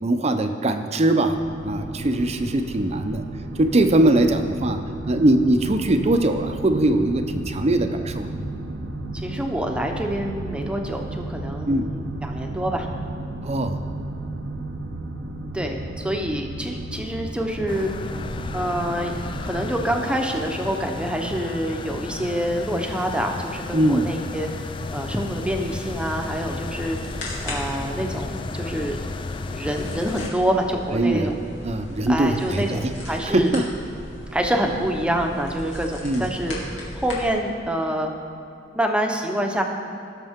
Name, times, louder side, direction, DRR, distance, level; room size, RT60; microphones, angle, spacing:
voice 1, 0.0-1.4 1.6-3.2 3.6-8.3 11.6-11.9 13.4-13.7 23.7-24.1 30.9-31.3 31.6-32.9 33.2-33.6 36.0-36.3, right 1 dB, 35° right, 6 dB, 0.7 m, -21 dB
sound 1, 1.3-20.0, right 1 dB, 75° right, 0.8 m, -34 dB
voice 2, 9.1-12.9 15.5-17.9 18.5-19.1 19.4-24.5 24.9-27.0 27.4-29.0 29.5-31.3 32.1-33.5 34.3-38.1 38.7-39.6, equal, 5° right, 2 dB, 0.9 m, -26 dB
sound 2, 17.7-30.3, left 3 dB, 25° left, 0.3 m, -34 dB
sound 3, 24.7-37.3, left 1 dB, 90° left, 2.6 m, -37 dB
18.0 x 6.7 x 3.7 m, 2.6 s
head